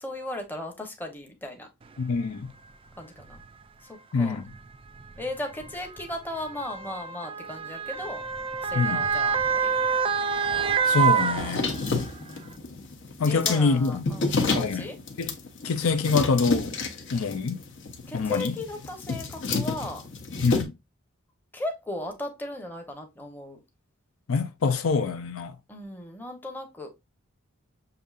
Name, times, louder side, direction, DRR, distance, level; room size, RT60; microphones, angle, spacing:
voice 1, 0.0-1.7 3.0-3.4 3.8-4.5 5.2-8.3 8.6-9.7 11.6-12.7 13.2-15.0 18.1-20.1 21.5-23.6 25.7-26.9, left 1 dB, 10° left, 0.9 m, -37 dB
voice 2, 2.0-2.5 4.1-4.4 8.7-9.0 10.8-11.7 13.2-14.0 14.5-14.9 15.2-15.3 15.6-16.8 17.1-17.6 18.1-18.5 20.4-20.7 24.3-25.6, left 4 dB, 75° left, 0.5 m, -25 dB
Motor vehicle (road) / Siren, 2.1-2.2 3.2-3.4 4.5-12.1 12.5-12.6, right 6 dB, 25° right, 0.3 m, -27 dB
sound 1, 11.4-20.6, left 3 dB, 60° left, 0.9 m, -30 dB
6.8 x 2.7 x 2.4 m
head